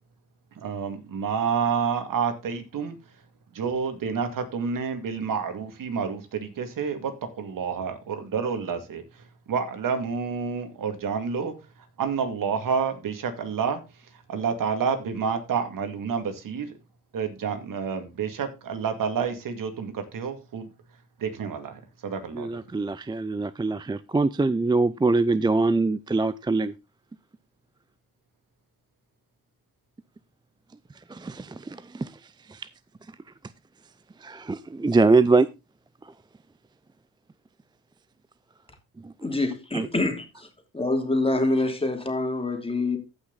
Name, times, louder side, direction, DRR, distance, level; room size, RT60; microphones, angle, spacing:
voice 1, 0.6-3.0 3.5-9.0 9.5-11.5 12.0-13.8 14.3-16.7 17.1-20.7 21.2-22.6, right 6 dB, 65° right, 2.3 m, -29 dB
voice 2, 22.3-26.7 31.1-32.2 32.5-32.7 34.2-35.5 39.0-39.1 39.7-39.9, right 3 dB, 15° right, 0.4 m, -23 dB
voice 3, 39.2-40.5 40.7-43.0, left 2 dB, 15° left, 2.9 m, -26 dB
14.5 x 5.9 x 3.9 m
cardioid pair, 85°, 35 cm